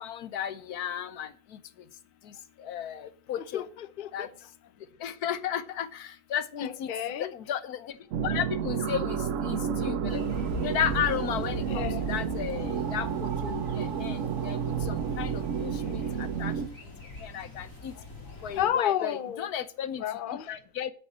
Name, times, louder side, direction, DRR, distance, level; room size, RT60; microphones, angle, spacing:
voice 1, 0.0-1.3 2.6-3.6 4.1-4.3 5.0-6.9 7.3-7.9 8.2-10.2 10.6-14.6 15.2-16.0 16.4-16.5 17.2-17.9 18.4-20.0 20.5-20.9, left 9 dB, 90° left, 1.4 m, -34 dB
voice 2, 3.4-4.3 6.5-7.3 11.7-12.1 15.8-16.2 18.0-18.1 18.6-19.5 20.0-20.5, left 10 dB, 40° left, 0.8 m, -32 dB
sound 1, 8.1-16.7, right 7 dB, 60° right, 1.1 m, -31 dB
sound 2, 10.1-18.7, left 2 dB, 60° left, 4.1 m, -42 dB
8.4 x 8.0 x 8.6 m
omnidirectional pair, 1.6 m